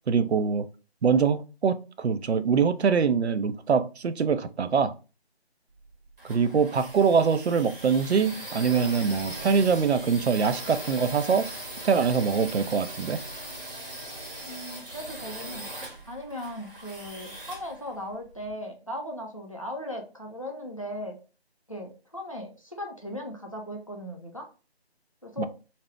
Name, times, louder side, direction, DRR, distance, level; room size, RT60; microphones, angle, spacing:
voice 1, 0.1-0.7 1.0-4.9 6.2-11.5 11.8-13.2 25.4-25.5, right 6 dB, 80° right, 0.5 m, -24 dB
sound 1, 5.8-18.5, right 1 dB, 55° right, 1.4 m, -40 dB
voice 2, 14.4-15.7 16.0-21.1 21.7-24.5 25.2-25.4, left 1 dB, 30° left, 0.5 m, -37 dB
2.7 x 2.1 x 3.2 m
figure-of-eight pair, 170°, 32 cm